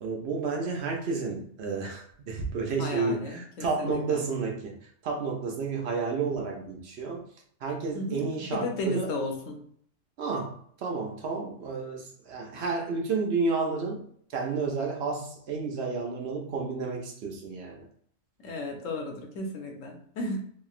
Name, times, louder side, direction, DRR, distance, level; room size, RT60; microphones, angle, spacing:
voice 1, 0.0-4.8 5.0-7.3 7.6-9.1 10.2-17.8, right 4 dB, 60° right, 0 dB, 0.8 m, -31 dB
voice 2, 2.8-4.2 7.9-9.6 18.4-20.4, left 2 dB, 90° left, 2 dB, 1.1 m, -34 dB
3.0 x 2.6 x 2.4 m, 0.62 s
omnidirectional pair, 1.3 m